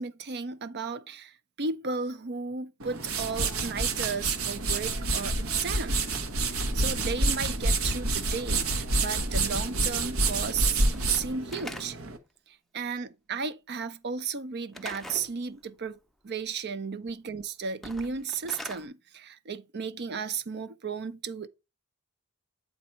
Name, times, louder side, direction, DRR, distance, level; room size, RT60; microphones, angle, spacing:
voice 1, 0.0-6.0 6.5-12.0 12.5-16.0 16.2-21.5, right 5 dB, 50° right, 0.6 m, -34 dB
sound 1, 2.8-12.2, right 3 dB, 80° right, 1.1 m, -28 dB
Slam / Wood, 10.9-12.2 14.7-15.3 17.7-18.9, left 1 dB, ahead, 0.6 m, -42 dB
8.6 x 4.0 x 4.3 m
head